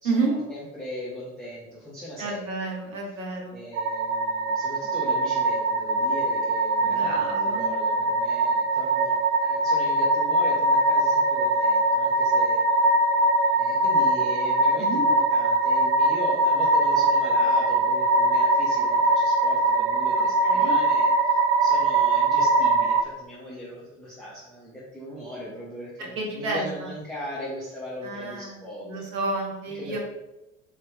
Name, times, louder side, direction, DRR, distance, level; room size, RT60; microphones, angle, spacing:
voice 1, 0.0-2.7 3.5-9.2 9.4-12.6 13.6-29.0 29.7-30.0, equal, ahead, -9 dB, 1.0 m, -38 dB
voice 2, 2.2-3.6 6.8-7.7 14.8-15.0 20.2-20.7 26.2-26.7 28.0-30.0, right 3 dB, 70° right, 0 dB, 0.8 m, -30 dB
sound 1, 3.7-23.0, right 2 dB, 35° right, 0.4 m, -22 dB
3.2 x 2.9 x 3.3 m, 0.96 s
figure-of-eight pair, 60°, 39 cm